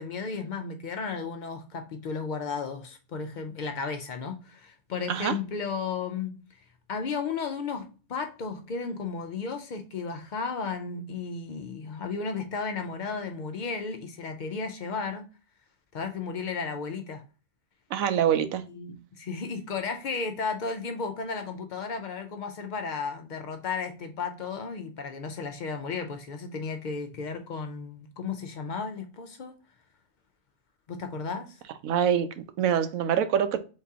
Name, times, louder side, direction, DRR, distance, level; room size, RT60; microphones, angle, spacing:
voice 1, 0.0-6.4 6.9-15.3 15.9-17.2 18.7-29.6 30.9-31.6, left 5 dB, 85° left, 0.4 m, -34 dB
voice 2, 17.9-18.6 31.8-33.6, right 9 dB, 80° right, 1.0 m, -25 dB
3.8 x 2.8 x 3.5 m
omnidirectional pair, 1.4 m